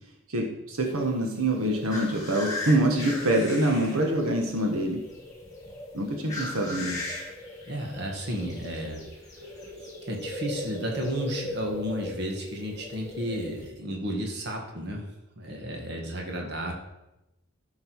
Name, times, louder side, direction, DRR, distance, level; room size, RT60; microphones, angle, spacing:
voice 1, 0.3-5.0 5.9-7.1, right 1 dB, 80° right, 1 dB, 1.5 m, -25 dB
sound 1, 0.8-13.7, left 2 dB, 15° left, 2.6 m, -38 dB
voice 2, 7.7-9.0 9.8-15.1 15.4-16.7, equal, 50° right, 1 dB, 1.7 m, -33 dB
12.0 x 6.5 x 4.7 m, 0.91 s
head